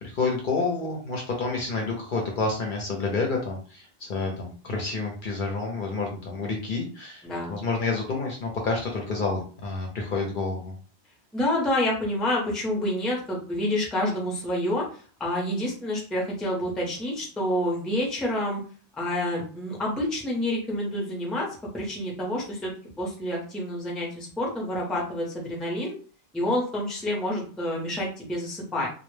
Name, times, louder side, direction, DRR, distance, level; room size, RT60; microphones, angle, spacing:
voice 1, 0.0-10.7, left 3 dB, 60° left, 0 dB, 0.6 m, -29 dB
voice 2, 7.2-7.6 11.3-18.6 19.0-22.7 23.0-26.0 26.3-28.9, left 1 dB, ahead, -2 dB, 0.5 m, -28 dB
2.1 x 2.0 x 3.0 m, 0.41 s
omnidirectional pair, 1.1 m